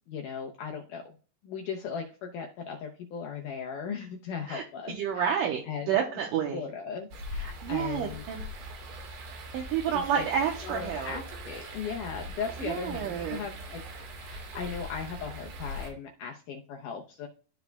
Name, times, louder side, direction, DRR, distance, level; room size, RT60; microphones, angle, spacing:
voice 1, 0.1-1.2 1.4-6.0 6.5-8.2 9.9-10.2 10.6-13.8 14.2-17.3, left 6 dB, 80° left, 2 dB, 1.9 m, -38 dB
voice 2, 4.5-6.6 7.4-8.4 9.2-11.2 12.6-13.4, right 8 dB, 75° right, 0 dB, 2.2 m, -30 dB
sound 1, 7.1-15.9, equal, 90° right, 3.7 m, -41 dB
13.0 x 4.6 x 2.3 m, 0.39 s
omnidirectional pair, 4.6 m